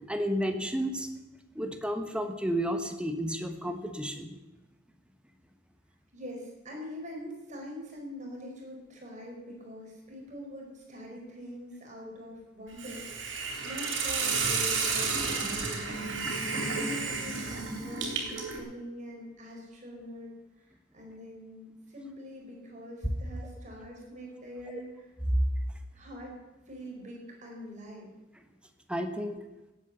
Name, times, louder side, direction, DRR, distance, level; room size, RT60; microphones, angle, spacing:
voice 1, 0.1-1.1 1.5-4.3 25.3-25.4 28.9-29.4, equal, 5° right, 6 dB, 1.3 m, -31 dB
voice 2, 6.1-20.3 20.6-25.0 25.9-26.4 26.7-28.1, equal, 40° right, 0 dB, 4.3 m, -44 dB
Hiss, 12.8-18.6, right 4 dB, 75° right, 3.7 m, -31 dB
17.0 x 8.9 x 6.8 m, 1.1 s
head